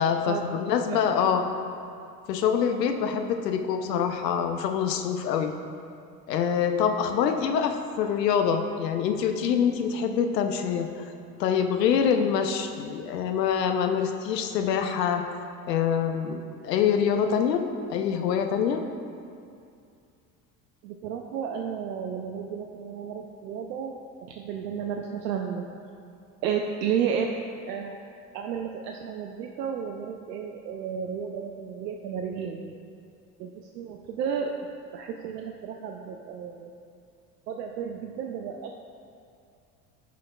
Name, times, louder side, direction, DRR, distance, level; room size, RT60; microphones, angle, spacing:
voice 1, 0.0-1.4 2.3-5.5 6.3-10.9 11.4-15.2 15.7-16.4 16.6-18.8, left 7 dB, 80° left, 6 dB, 0.6 m, -25 dB
voice 2, 20.8-24.0 24.3-25.7 26.4-28.0 28.3-32.8 33.4-34.5 34.9-36.7 37.5-38.7, right 7 dB, 75° right, 2 dB, 0.6 m, -32 dB
11.0 x 5.1 x 2.3 m, 2.4 s
hypercardioid pair, 65°, 48 cm